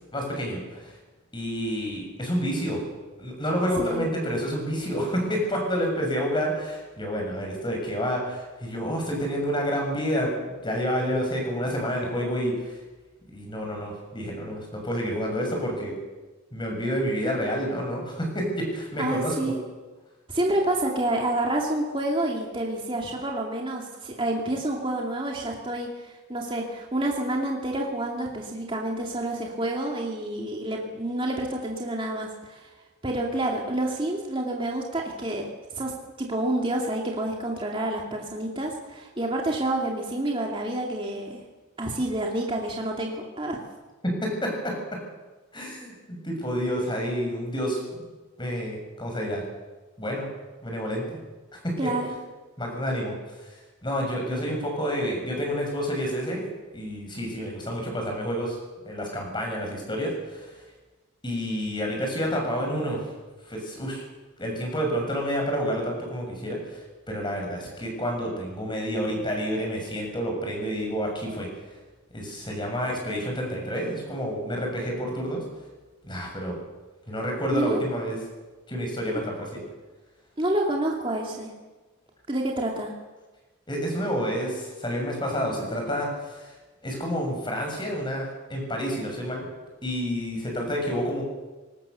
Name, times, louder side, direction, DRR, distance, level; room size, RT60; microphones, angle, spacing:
voice 1, 0.1-0.9 1.3-2.8 3.2-12.8 13.3-16.0 16.5-19.5 44.0-45.0 45.5-48.0 48.4-49.4 50.0-50.3 50.6-51.2 51.6-51.9 52.6-56.5 56.7-58.6 58.9-60.6 61.2-63.0 63.5-64.0 64.4-71.5 72.1-75.4 76.0-76.6 77.1-78.2 78.7-79.5 83.7-86.5 86.8-89.5 89.8-91.2, equal, 20° left, 1 dB, 6.7 m, -29 dB
voice 2, 3.8-4.1 19.0-19.6 20.3-32.7 33.0-35.5 35.7-35.9 36.2-41.4 41.8-43.6 51.8-52.1 77.5-77.8 80.4-81.5 82.3-82.9, right 1 dB, 25° right, -1 dB, 2.4 m, -28 dB
23.0 x 19.0 x 6.8 m, 1.2 s
head